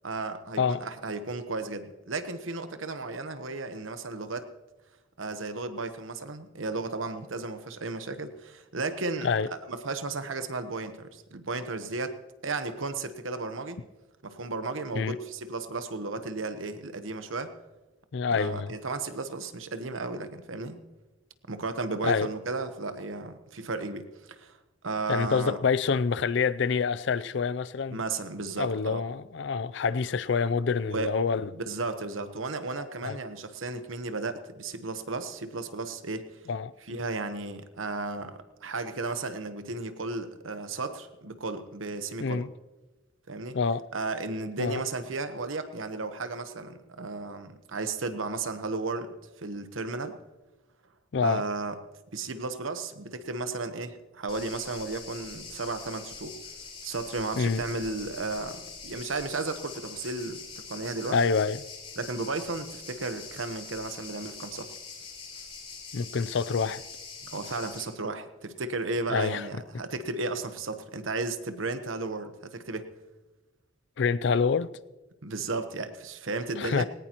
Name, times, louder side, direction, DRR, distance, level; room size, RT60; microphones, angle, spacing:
voice 1, 0.0-4.5 5.2-12.2 12.4-13.8 14.2-17.5 18.3-20.8 21.5-24.6 24.8-25.6 27.9-29.0 30.8-31.1 31.4-36.2 36.8-42.5 43.3-43.6 43.9-50.2 51.2-51.8 52.1-56.4 56.8-61.2 62.0-64.7 67.3-72.9 75.2-76.8, right 3 dB, 90° right, 1.1 m, -34 dB
voice 2, 18.1-18.7 22.0-22.3 25.1-28.0 28.6-31.5 33.0-33.2 36.5-36.7 42.2-42.5 43.5-43.8 44.6-44.8 51.1-51.4 57.4-57.6 61.1-61.6 65.9-66.8 69.1-69.4 74.0-74.7 76.6-76.8, left 5 dB, 65° left, 0.4 m, -27 dB
sound 1, 54.3-67.8, left 5 dB, 30° left, 4.6 m, -44 dB
19.0 x 18.5 x 3.0 m
head